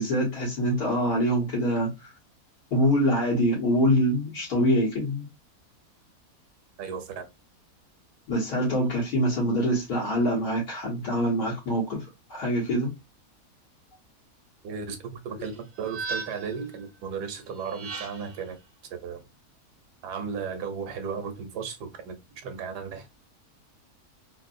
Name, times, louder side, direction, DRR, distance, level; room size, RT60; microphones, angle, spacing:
voice 1, 0.0-1.9 2.7-5.3 8.3-12.9, equal, 80° left, 1.8 m, -25 dB
voice 2, 6.8-7.2 14.6-18.6 19.0-19.2 20.0-22.1 22.4-23.1, right 6 dB, 90° right, 1.4 m, -35 dB
sound 1, 15.4-16.6 17.6-18.4, right 4 dB, 70° right, 1.5 m, -37 dB
3.9 x 2.1 x 2.5 m
omnidirectional pair, 1.7 m